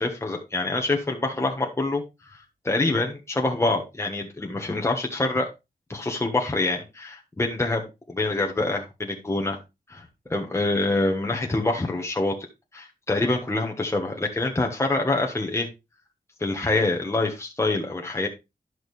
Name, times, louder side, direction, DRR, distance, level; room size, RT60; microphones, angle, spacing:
voice 1, 0.0-2.0 2.3-5.5 5.9-9.6 9.9-10.0 10.3-12.4 12.7-15.7 16.4-18.3, left 2 dB, 15° left, 1 dB, 1.2 m, -26 dB
11.0 x 6.3 x 3.2 m, 0.25 s
wide cardioid pair, 120°, 15 cm